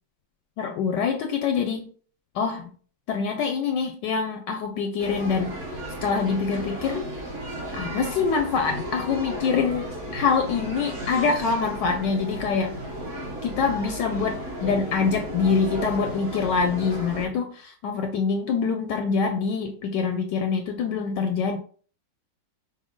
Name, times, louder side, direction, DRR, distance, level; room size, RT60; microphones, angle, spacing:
voice 1, 0.6-1.9 2.3-2.7 3.1-5.6 6.0-7.0 7.7-12.8 13.4-21.6, left 5 dB, 75° left, 5 dB, 1.1 m, -25 dB
sound 1, 5.0-17.3, equal, 45° right, 1.4 m, -34 dB
6.1 x 2.1 x 3.6 m, 0.43 s
omnidirectional pair, 2.1 m